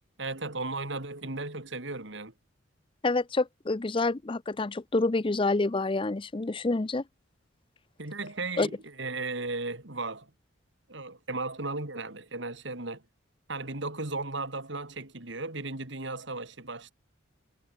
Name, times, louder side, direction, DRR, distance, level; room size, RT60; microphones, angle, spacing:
voice 1, 0.2-2.3 8.0-10.3 10.9-13.0 13.5-16.9, right 3 dB, 60° right, 2.9 m, -35 dB
voice 2, 3.0-7.0 8.6-8.7, left 3 dB, 25° left, 0.5 m, -27 dB
head